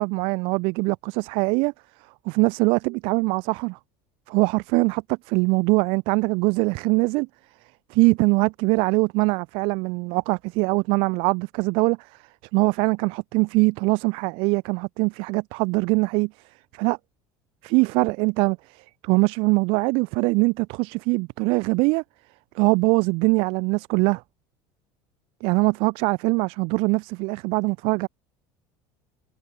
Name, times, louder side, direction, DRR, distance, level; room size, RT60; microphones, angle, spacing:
voice 1, 0.0-1.7 2.3-3.8 4.3-7.3 7.9-12.0 12.5-16.3 16.7-17.0 17.6-22.0 22.5-24.2 25.4-28.1, right 28 dB, 65° right, 4.8 m, -22 dB
cardioid pair, 165°, 10 cm